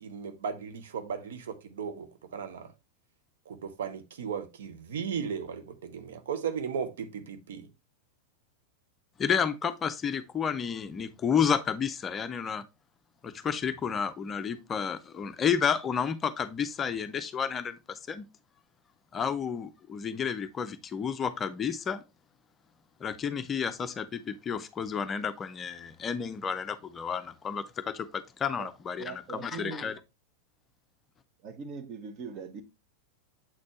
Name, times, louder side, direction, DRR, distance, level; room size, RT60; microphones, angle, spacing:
voice 1, 0.0-2.7 3.5-7.7, right 7 dB, 60° right, 0.8 m, -36 dB
voice 2, 9.2-12.6 13.2-18.3 19.1-22.0 23.0-30.0, left 7 dB, 20° left, 0.5 m, -31 dB
voice 3, 29.0-29.9 31.4-32.6, right 5 dB, 35° right, 1.0 m, -41 dB
7.5 x 4.2 x 3.0 m
figure-of-eight pair, 90°, 0 cm